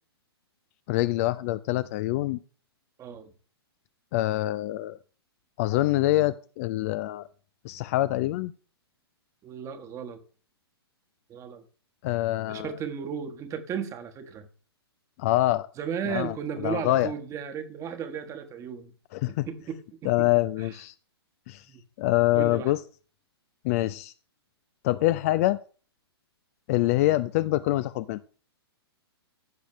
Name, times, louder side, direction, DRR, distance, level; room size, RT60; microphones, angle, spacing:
voice 1, 0.9-2.4 4.1-5.0 5.6-7.3 7.6-8.5 12.0-12.8 15.2-15.7 16.1-17.1 19.1-19.5 20.0-20.9 21.5-21.6 22.0-22.8 23.6-24.1 24.8-25.6 26.7-28.2, left 17 dB, 35° left, 0.4 m, -25 dB
voice 2, 3.0-3.3 9.4-10.2 11.3-11.6 12.5-14.5 15.8-18.9 19.5-20.3 20.6-20.7 21.7-21.8 22.3-22.7, right 7 dB, 20° right, 1.2 m, -35 dB
15.5 x 6.4 x 3.1 m
figure-of-eight pair, 115°, 14 cm